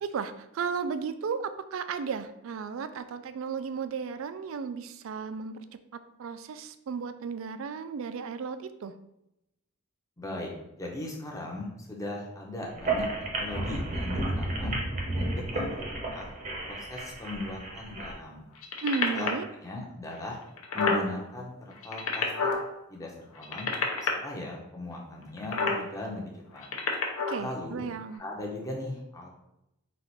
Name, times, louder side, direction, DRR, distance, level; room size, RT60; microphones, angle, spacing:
voice 1, 0.0-5.6 5.9-8.9 18.8-19.5 27.3-28.2, right 5 dB, 60° right, 11 dB, 0.3 m, -34 dB
voice 2, 10.2-10.5 10.8-13.1 13.4-14.8 15.1-15.8 16.1-16.2 16.6-18.4 19.1-19.3 19.6-20.4 20.7-22.3 22.9-23.7 24.0-26.7 27.4-27.9 28.2-29.3, left 2 dB, 15° left, -2 dB, 0.7 m, -38 dB
sound 1, 12.7-18.1, right 2 dB, 35° right, 0.8 m, -32 dB
sound 2, 18.6-19.4 20.1-20.2 20.4-21.0 21.7-22.6 23.4-24.1 25.4-25.8 26.5-27.4 28.1-28.2, left 4 dB, 70° left, 0.7 m, -28 dB
4.1 x 2.5 x 4.4 m, 0.86 s
head